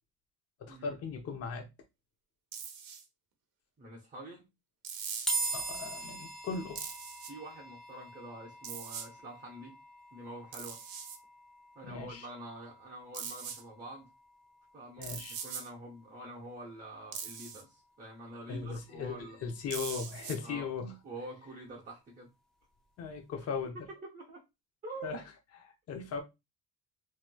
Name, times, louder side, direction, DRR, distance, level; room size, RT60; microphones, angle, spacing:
voice 1, 0.6-1.7 5.5-6.9 11.8-12.3 15.0-15.4 18.5-20.9 23.0-23.8 25.0-25.2 25.5-26.2, left 5 dB, 40° left, 0.8 m, -38 dB
sound 1, 2.5-3.0 4.8-5.6 6.8-7.3 8.6-9.1 10.5-11.2 13.1-13.6 15.0-15.7 17.1-17.6 19.7-20.4, right 7 dB, 65° right, 0.8 m, -41 dB
voice 2, 3.8-4.5 7.3-9.8 10.1-10.8 11.7-14.1 14.7-19.4 20.4-20.7 21.0-22.3 24.0-24.4 24.8-25.1, right 1 dB, 20° right, 0.7 m, -46 dB
sound 2, 5.3-18.6, right 2 dB, ahead, 0.4 m, -43 dB
3.1 x 3.0 x 2.2 m
cardioid pair, 140°, 38 cm